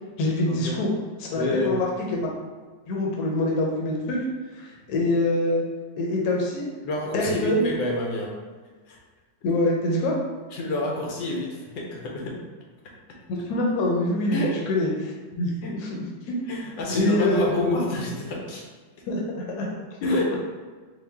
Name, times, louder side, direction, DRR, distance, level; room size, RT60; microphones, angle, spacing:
voice 1, 0.2-0.9 1.2-2.3 2.9-4.2 4.5-5.6 6.0-6.7 7.1-7.6 9.4-10.2 13.3-16.0 16.9-17.5 19.1-19.7 20.1-20.2, left 1 dB, 65° left, -2 dB, 1.2 m, -25 dB
voice 2, 1.3-1.7 6.8-8.3 8.9-9.0 10.5-12.3 14.3-14.5 15.6-15.7 16.5-18.6 20.0-20.4, left 2 dB, 80° left, -2 dB, 1.4 m, -27 dB
3.8 x 2.3 x 3.4 m, 1.4 s
omnidirectional pair, 1.9 m